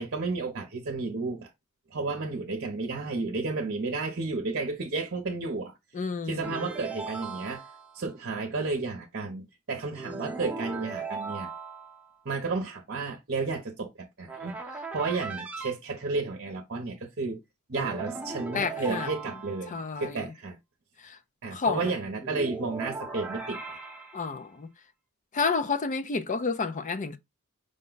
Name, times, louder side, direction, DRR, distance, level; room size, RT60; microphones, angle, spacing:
voice 1, 0.0-1.5 1.9-5.7 6.3-7.6 7.9-11.5 12.2-13.9 14.2-14.5 14.9-17.4 17.7-20.6 21.4-23.6, right 3 dB, 50° right, 0.8 m, -32 dB
voice 2, 5.9-6.7 18.5-19.1 19.7-20.3 21.0-21.2 21.5-21.9 24.1-24.7 25.3-27.2, left 4 dB, 35° left, 0.4 m, -30 dB
sound 1, 6.4-8.0 9.9-12.1 14.3-15.7 17.7-19.8 22.2-24.3, right 3 dB, 5° right, 0.9 m, -38 dB
5.1 x 2.2 x 3.8 m
head